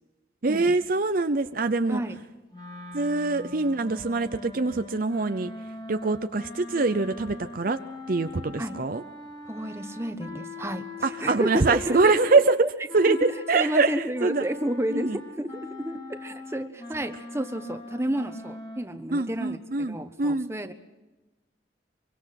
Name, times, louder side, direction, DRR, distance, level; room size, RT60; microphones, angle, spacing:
voice 1, 0.4-2.0 2.9-5.5 5.9-7.8 8.1-9.0 11.0-12.5 12.9-14.5 14.9-15.2 19.1-20.5, right 3 dB, 45° right, 9 dB, 0.6 m, -24 dB
sound 1, 2.5-12.5 12.9-18.8, left 2 dB, 20° left, 2.2 m, -41 dB
voice 2, 9.5-12.4 13.1-13.2 13.5-19.6 19.9-20.7, equal, 15° right, 8 dB, 1.1 m, -31 dB
24.5 x 24.0 x 6.0 m, 1.1 s
head